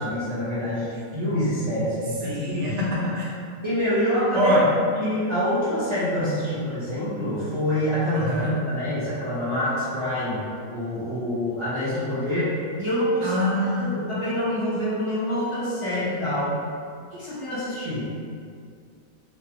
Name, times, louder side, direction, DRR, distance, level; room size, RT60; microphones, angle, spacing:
voice 1, 0.0-2.7 3.6-4.5 5.0-10.4 10.7-12.5 12.8-13.4 13.8-16.6 17.1-18.1, equal, 30° right, -13 dB, 0.6 m, -26 dB
voice 2, 2.2-3.3 4.3-4.7 8.1-8.6 13.2-13.9, equal, 60° right, -5 dB, 0.9 m, -24 dB
3.0 x 2.3 x 2.9 m, 2.2 s
omnidirectional pair, 1.5 m